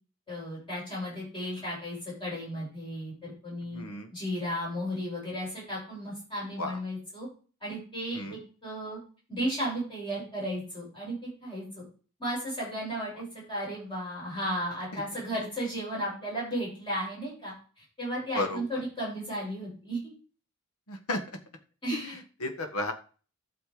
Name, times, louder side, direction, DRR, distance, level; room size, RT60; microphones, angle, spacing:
voice 1, 0.3-3.8 4.1-7.3 7.6-9.0 9.3-11.8 12.2-20.0 21.8-22.2, equal, 20° left, -5 dB, 7.3 m, -34 dB
voice 2, 3.7-4.1 6.6-6.8 8.1-8.4 14.9-15.0 18.3-18.6 20.9-21.2 21.9-22.9, left 2 dB, 85° left, 6 dB, 1.5 m, -33 dB
11.5 x 7.0 x 5.0 m, 0.39 s
head